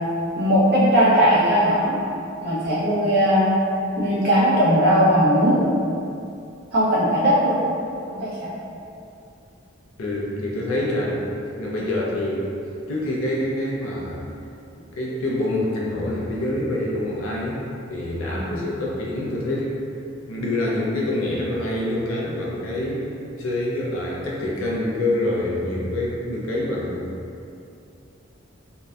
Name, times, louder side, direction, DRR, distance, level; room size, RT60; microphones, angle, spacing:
voice 1, 0.3-2.0 2.4-3.5 4.0-5.6 6.7-7.6 8.1-8.5 18.2-18.6, equal, 50° right, -9 dB, 0.7 m, -19 dB
voice 2, 10.0-12.6 12.9-14.2 14.9-17.6 17.9-19.8 20.3-23.1 23.4-27.1, left 1 dB, 90° left, -4 dB, 0.5 m, -26 dB
2.6 x 2.1 x 2.3 m, 2.5 s
head